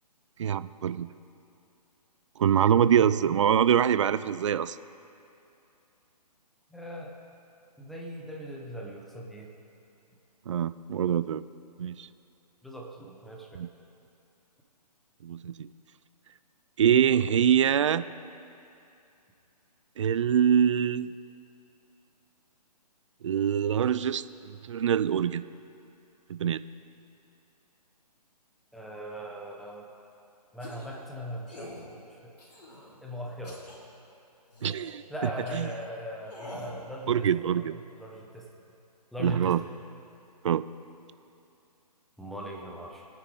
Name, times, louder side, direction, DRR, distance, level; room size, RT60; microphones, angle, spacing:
voice 1, 0.4-1.1 2.4-4.8 10.5-11.4 11.8-12.1 13.6-13.7 15.2-15.7 16.8-18.0 20.0-21.2 23.2-25.4 26.3-26.6 34.6-35.0 35.5-35.7 37.1-37.8 39.2-39.6 40.4-40.7, right 9 dB, 50° right, 15 dB, 0.4 m, -24 dB
voice 2, 2.8-3.4 6.7-7.1 7.8-9.5 12.6-13.6 28.7-29.9 30.5-31.8 32.1-32.3 33.0-33.6 35.1-38.5 39.1-39.7 42.2-43.1, equal, ahead, -2 dB, 0.9 m, -39 dB
sound 1, 30.6-30.9 31.5-31.8 32.4-32.9 33.4-33.8 34.5-34.9 35.5-35.6 36.3-36.7, left 1 dB, 75° left, 3.6 m, -44 dB
21.0 x 9.3 x 3.6 m, 2.7 s
figure-of-eight pair, 140°, 21 cm